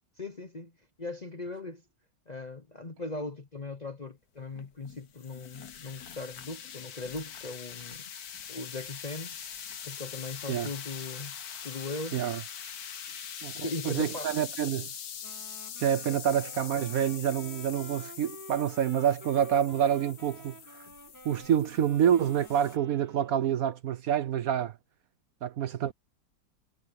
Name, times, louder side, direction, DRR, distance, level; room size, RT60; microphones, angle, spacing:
voice 1, 0.2-0.7 1.0-1.8 2.3-8.0 8.5-9.4 9.8-11.4 11.6-12.2 13.6-14.3 16.1-16.2, left 3 dB, 35° left, 0.7 m, -39 dB
sound 1, 4.6-22.8, left 8 dB, 60° left, 1.6 m, -43 dB
voice 2, 13.9-14.9 15.8-20.5 21.2-24.7 25.4-25.9, right 9 dB, 65° right, 1.0 m, -27 dB
Wind instrument woodwind instrument, 15.2-23.7, right 1 dB, 10° right, 2.0 m, -50 dB
omnidirectional pair, 1.9 m